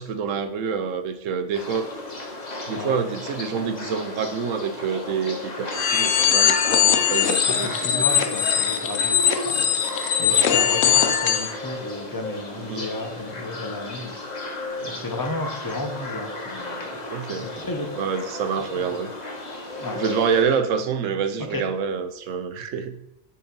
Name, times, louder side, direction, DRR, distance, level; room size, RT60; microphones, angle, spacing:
voice 1, 0.0-1.9 2.7-8.1 10.3-10.4 12.6-12.9 14.8-15.0 17.1-17.5 18.0-19.1 19.9-23.0, right 6 dB, 75° right, 9 dB, 1.1 m, -27 dB
sound 1, 1.5-20.4, left 2 dB, 35° left, 1.2 m, -34 dB
sound 2, 5.7-11.5, left 9 dB, 70° left, 1.1 m, -21 dB
voice 2, 7.5-16.9 17.3-17.9 18.7-19.0 19.8-20.0 21.4-21.6, left 2 dB, 20° left, 3 dB, 0.9 m, -33 dB
7.5 x 4.4 x 5.2 m, 0.78 s
omnidirectional pair, 1.4 m